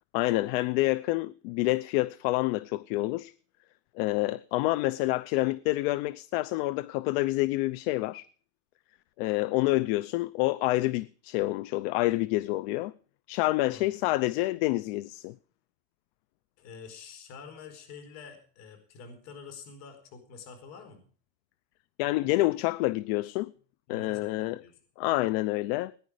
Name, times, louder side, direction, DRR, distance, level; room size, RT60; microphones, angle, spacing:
voice 1, 0.1-3.3 4.0-8.3 9.2-12.9 13.3-15.4 22.0-23.5 23.9-24.6 25.0-25.9, left 19 dB, 75° left, 0.7 m, -28 dB
voice 2, 16.6-21.1 23.9-24.8, left 5 dB, 55° left, 4.6 m, -47 dB
19.0 x 10.5 x 4.9 m
cardioid pair, 150°, 31 cm